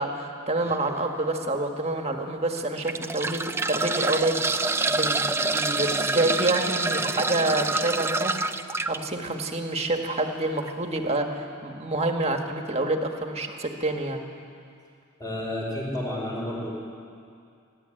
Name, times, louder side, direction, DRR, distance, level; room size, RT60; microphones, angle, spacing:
voice 1, 0.0-8.4 8.8-14.2, right 2 dB, 30° right, 3 dB, 1.7 m, -27 dB
sound 1, 0.6-0.9 1.5-1.6 2.6-9.0 10.6-10.7 11.0-11.1, right 3 dB, 10° right, 0.4 m, -27 dB
voice 2, 15.2-16.7, left 1 dB, 15° left, -2 dB, 4.5 m, -31 dB
29.5 x 12.0 x 9.0 m, 2.4 s
head